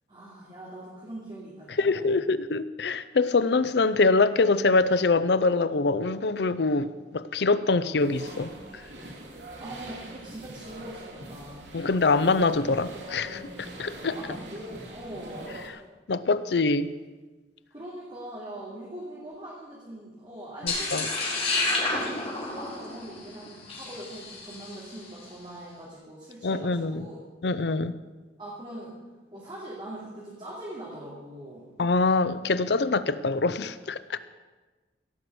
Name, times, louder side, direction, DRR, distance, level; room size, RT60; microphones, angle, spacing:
voice 1, 0.1-2.2 9.6-11.7 14.1-15.6 17.7-27.2 28.4-29.0 29.3-31.7, right 1 dB, 30° right, -6 dB, 2.8 m, -42 dB
voice 2, 1.8-8.5 11.7-14.2 16.1-16.9 20.6-21.1 26.4-27.1 27.4-27.9 31.8-34.2, left 3 dB, 70° left, 14 dB, 0.6 m, -24 dB
sound 1, 8.0-15.7, right 1 dB, 85° right, 2.7 m, -43 dB
sound 2, 20.7-25.0, left 2 dB, 35° left, 4.5 m, -30 dB
17.0 x 6.2 x 7.9 m, 1.3 s
head